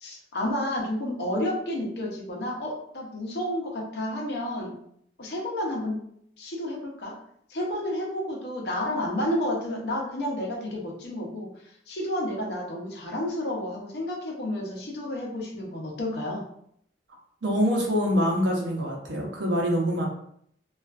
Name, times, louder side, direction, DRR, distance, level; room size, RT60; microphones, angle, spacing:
voice 1, 0.0-4.8 5.2-6.0 6.4-7.2 7.5-11.5 11.9-16.5, left 1 dB, 65° left, -1 dB, 0.7 m, -31 dB
voice 2, 17.4-20.0, equal, 75° right, -1 dB, 0.7 m, -25 dB
2.3 x 2.3 x 2.3 m, 0.68 s
head